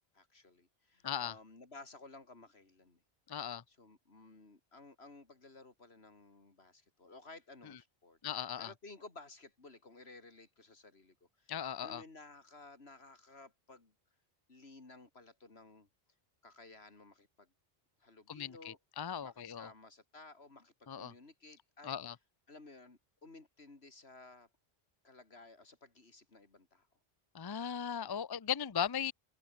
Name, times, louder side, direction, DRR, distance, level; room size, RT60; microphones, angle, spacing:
voice 1, 0.1-3.0 3.7-11.5 11.8-13.9 14.5-15.9 16.4-17.5 18.0-18.8 19.2-21.9 22.5-24.5 25.0-26.9, left 3 dB, 80° left, 3.4 m, -56 dB
voice 2, 1.0-1.4 3.3-3.6 7.7-7.8 8.2-8.7 11.5-12.0 18.3-19.7 20.9-21.1 21.8-22.2 27.3-29.1, left 8 dB, 30° left, 0.5 m, -38 dB
omnidirectional pair, 1.1 m